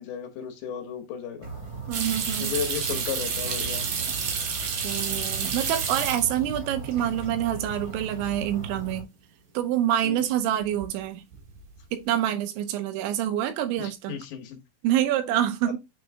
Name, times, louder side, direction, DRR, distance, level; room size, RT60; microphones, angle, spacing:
voice 1, 0.0-1.5 2.4-3.9 10.0-10.3 13.8-14.6, left 8 dB, 75° left, 3.0 m, -34 dB
sound 1, 1.4-9.0, right 3 dB, 45° right, 1.2 m, -38 dB
sound 2, 1.9-6.6 6.9-7.5 7.8-7.9 10.6-11.0 11.3-11.8, right 6 dB, 65° right, 1.8 m, -30 dB
voice 2, 1.9-2.6 4.8-9.1 9.5-11.2 11.9-14.2 14.8-15.8, right 11 dB, 85° right, 3.1 m, -26 dB
8.8 x 3.1 x 3.4 m
omnidirectional pair, 5.3 m